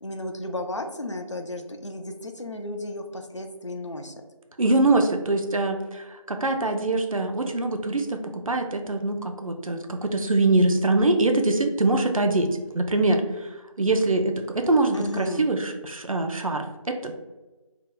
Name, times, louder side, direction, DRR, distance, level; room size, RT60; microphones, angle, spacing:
voice 1, 0.0-4.2 14.9-15.5, left 1 dB, 55° left, 5 dB, 0.4 m, -33 dB
voice 2, 4.6-17.1, right 2 dB, 70° right, 5 dB, 0.5 m, -24 dB
2.7 x 2.2 x 3.8 m, 1.2 s
figure-of-eight pair, 180°, 18 cm